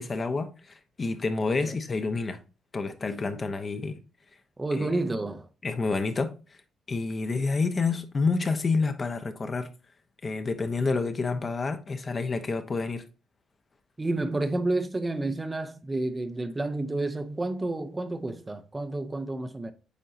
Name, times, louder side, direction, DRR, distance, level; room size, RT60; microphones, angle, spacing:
voice 1, 0.0-2.4 2.7-4.0 4.8-4.9 5.6-6.3 6.9-9.7 10.2-13.0, left 4 dB, 35° left, 1.0 m, -28 dB
voice 2, 4.6-5.5 14.0-19.7, right 2 dB, 20° right, 0.7 m, -30 dB
8.5 x 4.4 x 2.8 m
cardioid pair, 90°, 0 cm